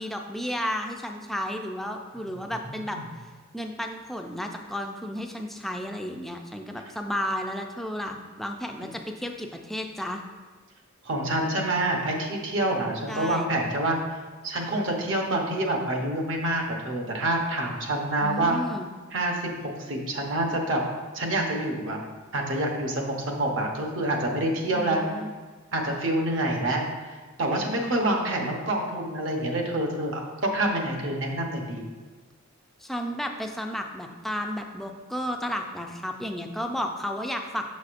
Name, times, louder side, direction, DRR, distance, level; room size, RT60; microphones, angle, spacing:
voice 1, 0.0-10.2 13.1-13.5 18.2-18.9 24.7-25.3 32.8-37.6, equal, ahead, 3 dB, 0.4 m, -33 dB
voice 2, 2.7-3.0 11.0-14.0 14.4-18.6 19.1-20.8 21.1-22.0 22.3-25.0 25.7-26.9 27.1-31.8, right 1 dB, 65° right, 1 dB, 0.9 m, -27 dB
6.4 x 6.2 x 2.5 m, 1.4 s
head